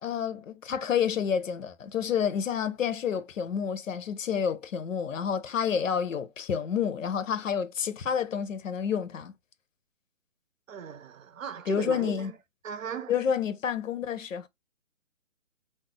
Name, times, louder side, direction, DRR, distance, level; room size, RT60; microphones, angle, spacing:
voice 1, 0.0-9.3 11.7-12.3 13.1-14.5, left 7 dB, 80° left, 0.7 m, -29 dB
voice 2, 10.7-12.4 12.6-13.1, right 7 dB, 85° right, 0.7 m, -37 dB
2.6 x 2.1 x 3.8 m
hypercardioid pair, 170°, 39 cm